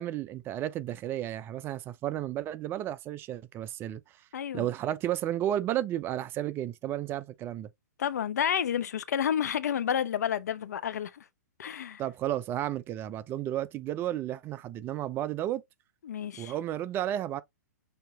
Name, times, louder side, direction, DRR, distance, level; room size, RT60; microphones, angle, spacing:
voice 1, 0.0-4.0 4.5-7.7 12.0-15.6 16.4-17.4, right 12 dB, 25° right, 0.4 m, -32 dB
voice 2, 4.3-4.7 8.0-11.2 11.6-12.0 16.0-16.5, left 9 dB, 65° left, 0.6 m, -30 dB
6.6 x 2.8 x 2.2 m
figure-of-eight pair, 120°, 10 cm